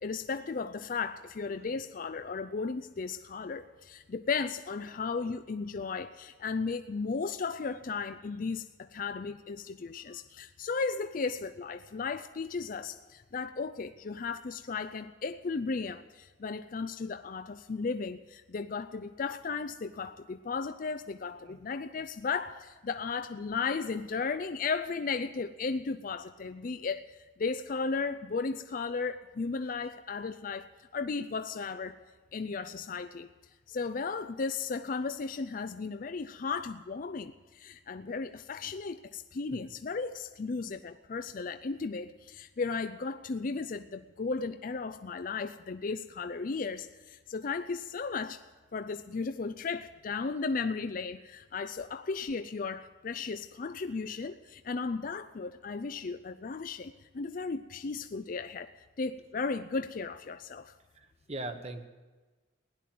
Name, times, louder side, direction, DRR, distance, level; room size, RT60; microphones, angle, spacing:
voice 1, 0.0-32.0 32.3-33.3 33.7-48.4 48.7-58.7 59.0-60.7, left 4 dB, 45° left, 10 dB, 0.4 m, -35 dB
voice 2, 4.9-5.3 21.4-21.6 60.9-61.8, right 2 dB, 35° right, 8 dB, 1.1 m, -42 dB
16.5 x 11.0 x 7.7 m, 1.3 s
head